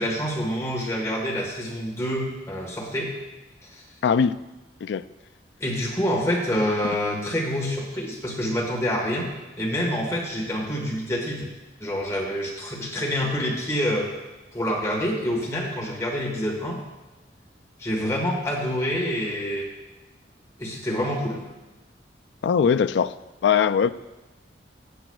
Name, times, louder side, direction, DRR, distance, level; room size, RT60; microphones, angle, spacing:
voice 1, 0.0-3.1 3.6-3.8 5.6-9.3 9.6-11.4 11.8-14.1 14.5-16.8 17.8-19.7 20.6-21.4, equal, 15° left, -2 dB, 1.4 m, -27 dB
voice 2, 4.0-4.4 4.8-5.0 22.4-23.1 23.4-23.9, left 6 dB, 70° left, 12 dB, 0.3 m, -20 dB
14.5 x 9.1 x 2.3 m, 1.1 s
head